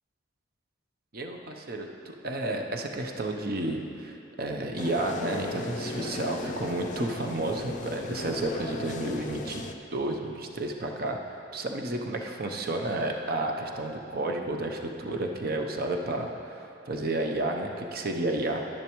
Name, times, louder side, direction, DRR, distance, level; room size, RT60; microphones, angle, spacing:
voice 1, 1.1-9.6 9.9-11.2 11.5-16.5 16.9-18.7, right 2 dB, 50° right, 3 dB, 0.7 m, -31 dB
sound 1, 4.8-9.7, left 2 dB, 40° left, 0.4 m, -36 dB
10.5 x 10.5 x 3.1 m, 2.7 s
head